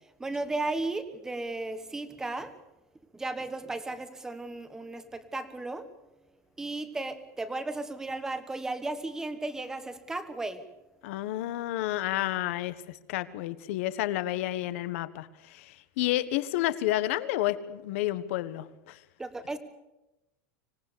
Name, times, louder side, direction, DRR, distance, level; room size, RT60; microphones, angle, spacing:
voice 1, 0.2-2.5 3.1-5.9 6.6-10.6 19.2-19.6, right 2 dB, 5° right, 11 dB, 1.3 m, -35 dB
voice 2, 11.0-12.8 13.1-19.0, left 14 dB, 60° left, 14 dB, 1.4 m, -30 dB
26.0 x 18.5 x 6.9 m, 0.98 s
supercardioid pair, 170°, 8 cm